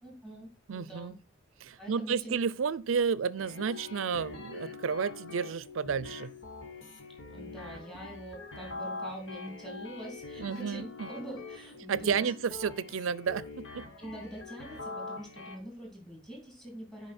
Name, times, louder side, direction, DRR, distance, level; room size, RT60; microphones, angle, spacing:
voice 1, 0.0-1.2 1.8-2.4 7.3-12.3 14.0-17.1, right 1 dB, 5° left, 2.8 m, -44 dB
voice 2, 0.7-1.2 1.6-6.3 10.4-11.1 11.9-13.8, right 6 dB, 80° right, 0.5 m, -31 dB
sound 1, 3.4-15.6, left 3 dB, 70° left, 1.6 m, -44 dB
9.9 x 5.1 x 4.2 m
head